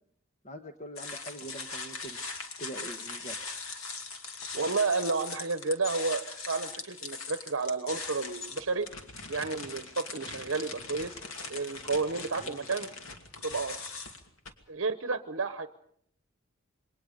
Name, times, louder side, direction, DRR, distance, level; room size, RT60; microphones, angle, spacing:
voice 1, 0.4-2.2 2.6-3.4 12.4-12.7, right 1 dB, 35° left, 6 dB, 1.2 m, -43 dB
sound 1, 1.0-14.5, left 4 dB, 80° left, 2.6 m, -40 dB
voice 2, 4.5-8.9 9.3-11.2 11.5-12.9 13.4-13.9 14.7-15.7, right 4 dB, 65° right, 10 dB, 0.9 m, -31 dB
28.0 x 22.5 x 5.2 m, 0.67 s
head